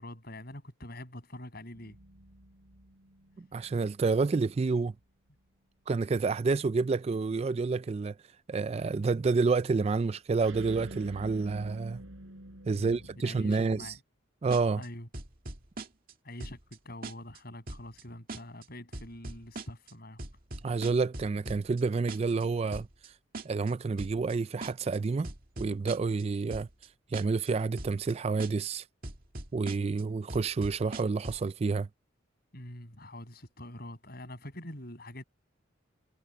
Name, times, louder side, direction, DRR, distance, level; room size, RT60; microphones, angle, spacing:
voice 1, 0.0-2.0 12.7-14.0 14.8-15.1 16.2-20.2 32.5-35.2, left 1 dB, 50° left, 7.3 m, -45 dB
sound 1, 1.7-4.7 10.4-14.0, right 1 dB, 85° right, 5.0 m, -48 dB
voice 2, 3.4-4.9 5.9-8.2 8.5-12.0 12.7-13.9 14.4-14.8 20.6-22.9 23.4-25.3 25.6-26.7 27.1-28.8 29.5-31.9, right 4 dB, 30° right, 0.3 m, -29 dB
sound 2, 14.5-14.9 15.1-16.1 16.4-16.8 17.0-17.4 17.7-18.0 18.3-18.6 18.9-19.9 20.2-21.8 22.1-22.4 22.7-23.1 23.3-23.7 24.0-24.3 24.6-25.0 25.2-26.2 26.5-26.9 27.1-27.5 27.8-28.1 28.4-28.8 29.0-30.0 30.3-31.5, right 2 dB, 45° right, 2.2 m, -41 dB
head